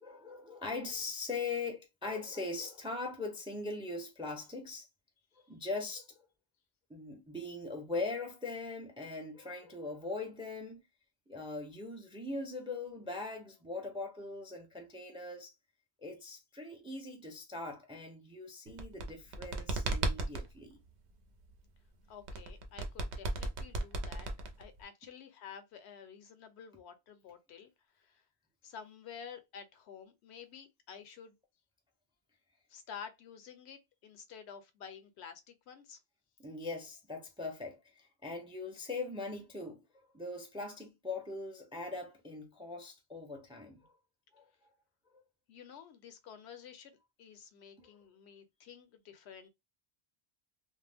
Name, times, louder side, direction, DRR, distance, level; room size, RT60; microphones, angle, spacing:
voice 1, 0.0-4.9 5.5-6.3 6.9-10.8 11.3-15.5 16.0-20.8 36.4-39.8 40.1-43.9 44.3-44.5 45.1-45.2 47.8-47.9, left 3 dB, 10° right, 0.4 m, -41 dB
sound 1, 18.7-20.5 22.3-24.8, right 2 dB, 80° right, 0.9 m, -35 dB
voice 2, 22.1-24.3 24.6-28.2 28.6-31.4 32.7-36.0 45.5-49.5, left 7 dB, 80° left, 0.9 m, -51 dB
2.4 x 2.1 x 3.3 m
omnidirectional pair, 1.1 m